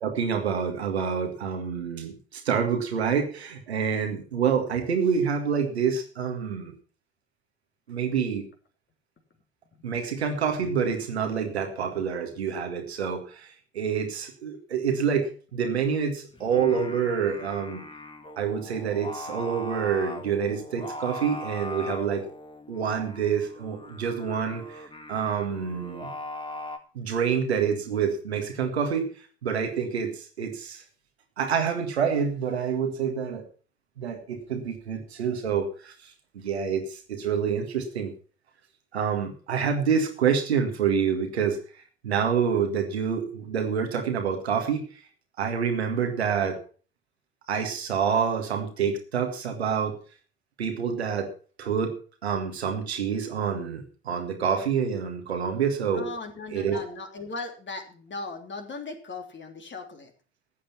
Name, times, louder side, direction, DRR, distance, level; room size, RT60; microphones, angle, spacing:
voice 1, 0.0-6.7 7.9-8.5 9.8-17.8 18.4-22.2 22.7-24.8 25.1-26.1 26.9-29.1 29.4-30.8 31.4-33.5 34.0-35.9 36.3-38.1 38.9-41.6 42.0-44.8 45.4-46.6 47.5-50.0 50.6-51.3 51.6-52.0 52.2-56.1 56.5-56.8, right 7 dB, 85° right, 5 dB, 1.9 m, -27 dB
Singing, 16.3-26.8, left 2 dB, 15° left, 2.0 m, -40 dB
voice 2, 55.9-60.1, left 3 dB, 35° left, 4 dB, 3.2 m, -38 dB
14.0 x 8.6 x 5.8 m, 0.39 s
figure-of-eight pair, 50°, 31 cm